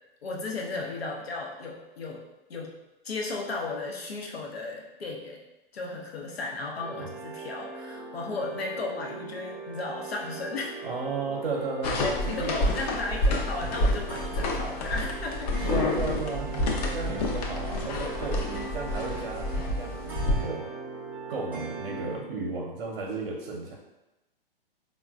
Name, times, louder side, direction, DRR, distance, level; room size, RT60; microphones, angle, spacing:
voice 1, 0.2-2.2 2.5-2.7 3.0-5.4 5.7-10.7 12.0-15.8, left 3 dB, 85° left, -1 dB, 0.7 m, -35 dB
sound 1, 6.8-22.1, right 3 dB, 5° right, 0.5 m, -40 dB
voice 2, 10.8-12.6 15.7-19.5 19.8-20.7 21.3-23.7, right 3 dB, 65° right, -1 dB, 0.7 m, -34 dB
sound 2, 11.8-20.4, left 1 dB, 40° left, 0.5 m, -29 dB
3.8 x 2.2 x 2.3 m, 0.98 s
hypercardioid pair, 120°, 30 cm